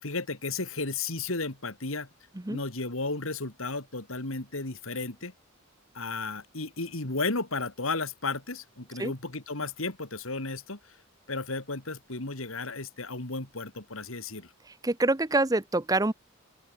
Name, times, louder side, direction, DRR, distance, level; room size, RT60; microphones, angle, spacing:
voice 1, 0.0-2.1 2.5-5.3 5.9-11.0 11.3-14.5, left 3 dB, 70° left, 3.0 m, -34 dB
voice 2, 14.8-16.1, right 2 dB, 15° right, 0.7 m, -25 dB
open air
head